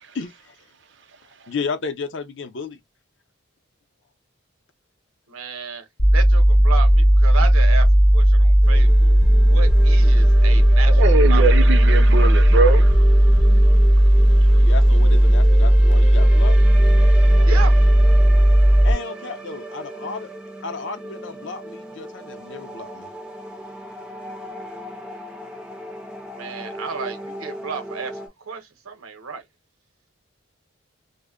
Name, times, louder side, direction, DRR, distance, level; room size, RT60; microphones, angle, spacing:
voice 1, 0.1-0.5 1.5-2.8 14.6-16.6 18.8-20.3 20.6-23.1, left 4 dB, 60° left, 0.5 m, -32 dB
voice 2, 5.3-5.8 6.1-7.9 8.1-9.1 9.5-11.0 11.3-11.4 17.4-17.8 26.3-28.2 28.5-29.4, right 5 dB, 90° right, 0.7 m, -32 dB
sound 1, 6.0-18.9, equal, 40° left, 0.9 m, -14 dB
sound 2, 8.6-28.3, right 1 dB, 5° right, 0.4 m, -37 dB
voice 3, 10.9-13.0 17.4-17.5, right 4 dB, 55° right, 0.5 m, -22 dB
2.1 x 2.0 x 3.4 m
head